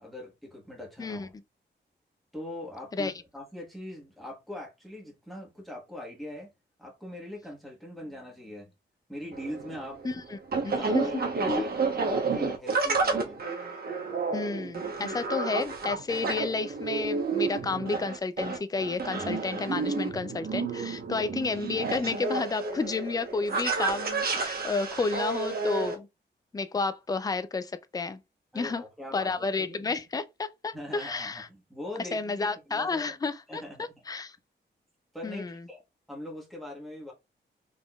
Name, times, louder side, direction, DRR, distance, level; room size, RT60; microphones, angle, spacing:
voice 1, 0.0-1.3 2.3-6.5 6.8-8.7 9.1-10.0 10.6-13.4 21.1-21.3 28.5-30.0 30.7-33.1 33.5-34.0 35.1-35.8 36.1-37.1, left 1 dB, ahead, 1.4 m, -42 dB
sound 1, 9.3-25.9, right 4 dB, 55° right, 1.0 m, -31 dB
voice 2, 10.6-11.2 11.5-11.6 14.3-26.1 26.5-28.2 28.5-28.8 29.1-31.5 32.1-33.6 34.1-34.4 35.2-35.6, left 4 dB, 20° left, 0.4 m, -31 dB
4.0 x 3.6 x 2.3 m
wide cardioid pair, 115°, 19 cm